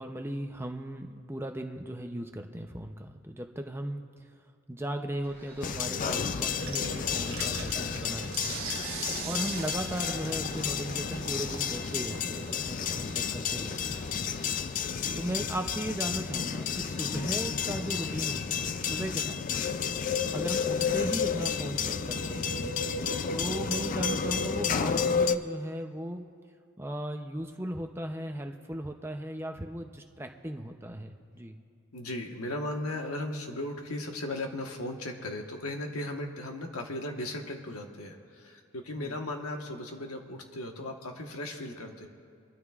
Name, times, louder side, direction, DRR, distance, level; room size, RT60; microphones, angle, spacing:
voice 1, 0.0-4.0 4.7-8.6 9.2-14.0 15.1-19.4 20.3-22.8 23.3-26.3 26.8-31.6 39.0-39.1, right 1 dB, 10° right, 4 dB, 0.6 m, -37 dB
sound 1, 5.2-19.1, right 1 dB, 15° left, 3.1 m, -53 dB
sound 2, 5.6-25.4, left 6 dB, 35° left, 0.3 m, -31 dB
sound 3, 6.5-15.7, right 7 dB, 70° right, 1.1 m, -43 dB
voice 2, 31.9-42.1, left 1 dB, 90° left, 3 dB, 1.3 m, -37 dB
24.5 x 12.5 x 2.4 m, 2.3 s
head